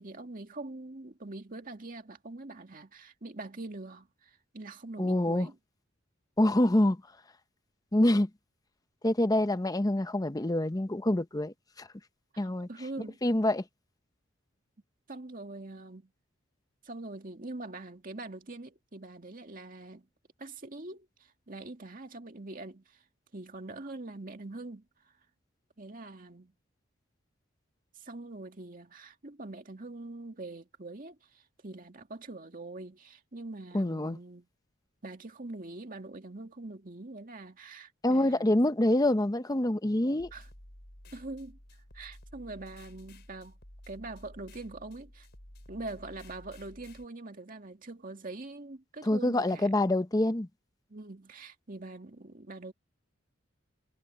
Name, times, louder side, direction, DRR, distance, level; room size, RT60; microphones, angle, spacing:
voice 1, 0.0-5.6 12.4-13.2 15.1-16.1 16.8-20.1 20.4-23.0 23.3-24.9 25.8-26.5 27.9-34.5 35.0-38.6 40.3-40.5 41.1-41.6 41.9-43.6 43.9-45.3 45.7-49.7 50.9-52.7, right 2 dB, 45° right, 2.1 m, -43 dB
voice 2, 5.0-5.5 6.4-7.0 7.9-8.3 9.0-11.9 12.4-12.7 13.2-13.6 33.7-34.2 38.0-40.3 49.0-50.5, left 1 dB, 20° left, 0.7 m, -26 dB
sound 1, 40.2-47.0, left 1 dB, 55° left, 5.4 m, -52 dB
head